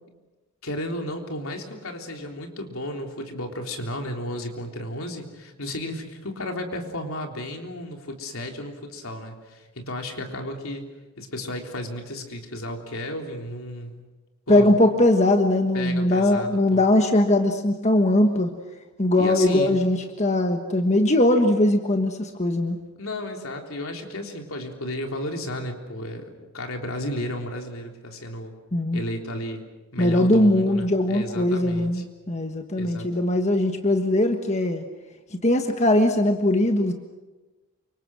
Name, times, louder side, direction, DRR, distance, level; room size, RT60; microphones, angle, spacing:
voice 1, 0.6-10.8 11.2-14.0 14.5-14.8 15.7-16.8 19.2-19.8 23.0-28.6 28.9-29.6 29.9-32.0 32.8-33.2, left 1 dB, 75° left, 2 dB, 3.5 m, -33 dB
voice 2, 14.5-18.5 19.0-22.8 28.7-29.0 30.0-34.8 35.3-36.9, left 1 dB, 30° left, 4 dB, 1.4 m, -20 dB
28.5 x 25.5 x 6.3 m, 1.1 s
head